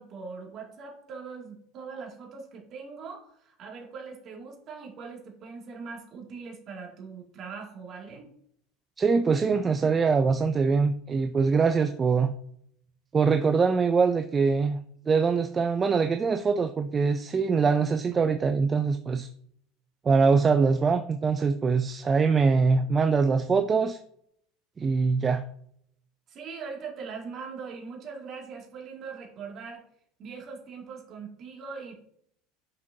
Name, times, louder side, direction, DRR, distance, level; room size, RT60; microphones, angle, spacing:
voice 1, 0.0-8.3 26.3-29.8 30.2-32.0, right 5 dB, 45° right, 0 dB, 2.2 m, -41 dB
voice 2, 9.0-12.3 13.1-14.8 15.1-19.3 20.0-24.0 24.8-25.4, right 5 dB, 25° right, 8 dB, 0.4 m, -23 dB
7.3 x 6.1 x 2.7 m, 0.68 s
supercardioid pair, 115°, 0 cm